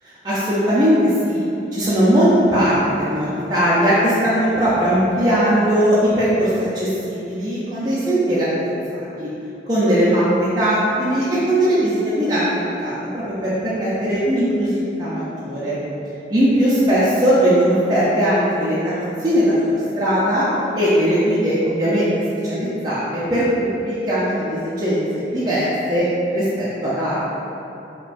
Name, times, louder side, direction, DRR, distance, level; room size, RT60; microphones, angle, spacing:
voice 1, 0.2-1.4 1.7-9.3 9.7-10.2 10.6-15.8 16.3-20.5 20.7-22.1 22.4-26.0 26.3-27.2, equal, 25° right, -10 dB, 0.4 m, -19 dB
5.3 x 2.2 x 2.5 m, 2.9 s
head